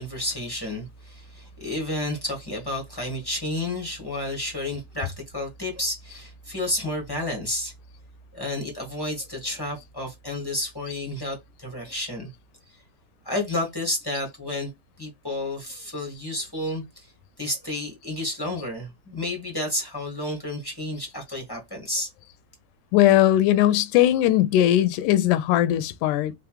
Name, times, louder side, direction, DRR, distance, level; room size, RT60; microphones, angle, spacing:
voice 1, 0.0-7.7 8.3-12.3 13.2-14.7 15.0-17.1 17.4-22.1, left 1 dB, 15° left, 0.7 m, -31 dB
voice 2, 22.9-26.3, left 12 dB, 80° left, 2.0 m, -19 dB
4.9 x 3.4 x 3.1 m
omnidirectional pair, 3.7 m